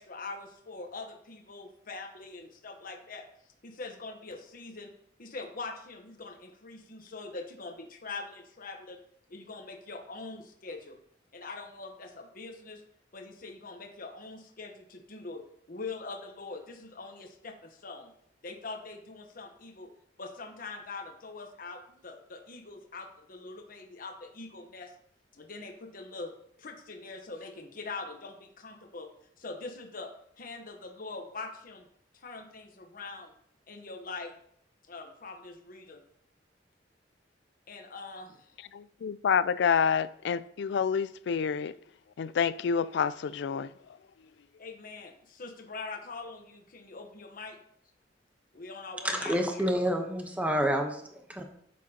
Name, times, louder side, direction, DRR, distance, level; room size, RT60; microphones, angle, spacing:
voice 1, 0.0-3.2 3.6-4.9 5.2-9.0 9.3-11.0 11.3-12.8 13.1-15.4 15.7-18.1 18.4-19.9 20.2-24.9 25.3-29.1 29.4-31.9 32.1-33.3 33.7-34.3 34.9-36.0 37.7-38.5 44.6-47.6 48.5-49.7, left 3 dB, 50° left, 1.1 m, -43 dB
voice 2, 38.7-41.7 42.2-43.7, left 6 dB, 65° left, 0.3 m, -28 dB
voice 3, 49.0-51.4, equal, 10° right, 0.9 m, -29 dB
10.5 x 7.5 x 2.9 m
head